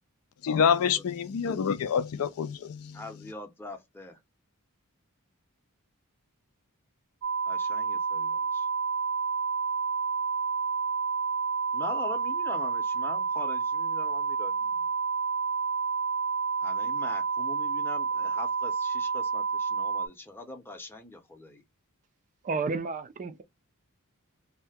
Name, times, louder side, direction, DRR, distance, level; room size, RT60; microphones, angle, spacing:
voice 1, 0.4-3.0, left 7 dB, 70° left, 0.4 m, -27 dB
voice 2, 2.9-4.2 7.5-8.7 11.7-14.9 16.6-21.6, left 2 dB, 10° left, 0.7 m, -42 dB
sound 1, 7.2-20.1, right 5 dB, 70° right, 0.7 m, -29 dB
voice 3, 22.4-23.4, right 4 dB, 35° right, 0.4 m, -31 dB
2.7 x 2.1 x 3.4 m
head